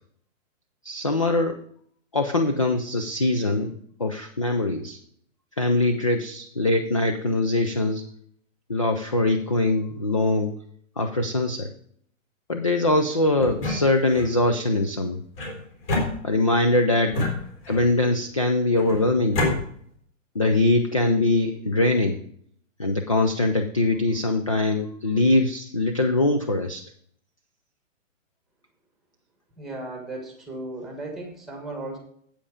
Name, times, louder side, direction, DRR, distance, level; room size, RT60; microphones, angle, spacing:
voice 1, 0.8-1.6 2.1-3.7 4.0-5.0 5.6-8.1 8.7-10.5 11.0-11.7 12.5-15.2 16.2-17.2 17.7-19.6 20.3-22.2 22.8-26.8, left 2 dB, 30° left, 6 dB, 0.3 m, -22 dB
sound 1, 13.4-14.4 15.4-16.6 17.1-18.0 18.8-19.5, left 2 dB, 45° left, 3.9 m, -29 dB
voice 2, 29.6-32.0, right 2 dB, ahead, 2 dB, 1.4 m, -35 dB
8.4 x 7.7 x 4.9 m, 0.63 s
hypercardioid pair, 160°, 39 cm